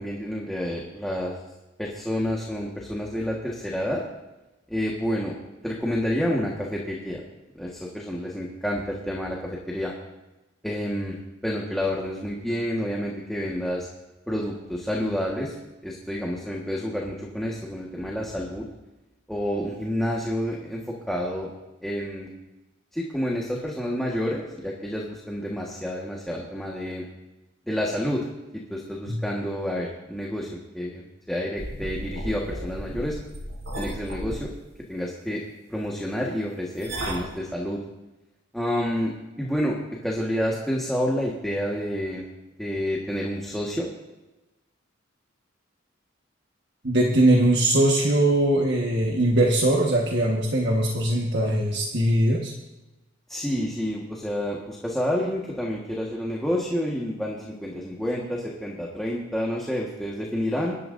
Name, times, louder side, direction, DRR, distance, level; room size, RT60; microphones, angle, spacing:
voice 1, 0.0-1.4 1.8-4.0 4.7-5.4 5.6-7.2 7.5-9.4 9.7-9.9 10.6-11.2 11.4-13.9 14.3-15.5 15.8-18.6 19.3-21.5 21.8-22.3 22.9-27.1 27.7-28.3 28.7-30.5 30.7-33.2 33.7-34.5 34.9-35.4 35.7-37.8 38.5-42.3 42.6-43.9 53.3-60.8, equal, ahead, -3 dB, 1.5 m, -29 dB
sound 1, 31.6-34.4 36.8-37.3, right 1 dB, 80° right, 4.0 m, -34 dB
voice 2, 46.8-52.5, right 1 dB, 60° right, -1 dB, 1.5 m, -21 dB
23.0 x 12.0 x 2.7 m, 1.0 s
head